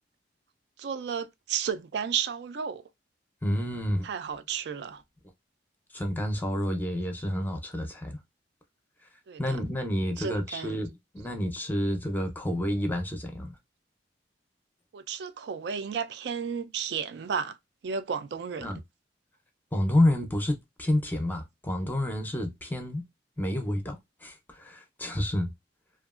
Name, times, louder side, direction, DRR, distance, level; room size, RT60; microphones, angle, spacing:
voice 1, 0.8-2.8 4.0-5.0 9.3-9.6 10.2-10.8 14.9-17.6 17.8-18.8, right 7 dB, 65° right, 0.4 m, -33 dB
voice 2, 3.4-4.1 5.9-8.2 9.4-13.5 18.6-18.8 19.7-23.0 23.4-25.5, left 1 dB, 10° left, 0.5 m, -29 dB
2.8 x 2.4 x 2.4 m
head